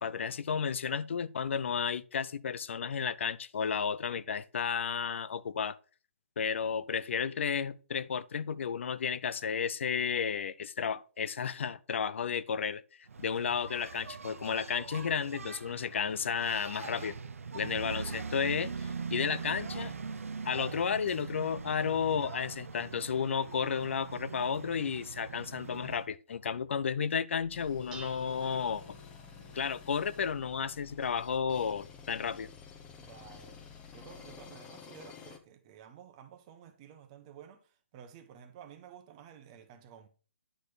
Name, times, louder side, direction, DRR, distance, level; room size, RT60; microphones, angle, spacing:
voice 1, 0.0-5.8 6.4-12.8 13.2-17.1 17.5-19.9 20.4-28.8 29.5-32.5, left 7 dB, 60° left, 0.6 m, -32 dB
Engine, 13.1-26.1, right 5 dB, 90° right, 0.7 m, -42 dB
Dishes pots and pans, 27.4-34.5, left 2 dB, 10° right, 1.3 m, -53 dB
sound 1, 27.5-35.4, left 6 dB, 15° left, 0.9 m, -52 dB
voice 2, 32.9-33.6 33.9-40.1, right 8 dB, 25° right, 1.1 m, -53 dB
10.0 x 4.3 x 5.0 m
hypercardioid pair, 160°, 7 cm